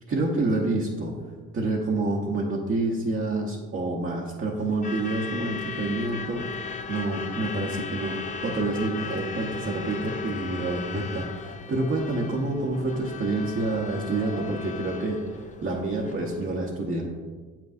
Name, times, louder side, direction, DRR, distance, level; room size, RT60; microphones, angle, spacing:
voice 1, 0.1-1.1 1.5-8.2 8.4-17.1, right 2 dB, 45° right, -3 dB, 1.0 m, -28 dB
Truck / Alarm, 4.6-16.5, left 5 dB, 25° left, 0.5 m, -37 dB
7.9 x 5.8 x 2.6 m, 1.4 s
cardioid pair, 90°, 30 cm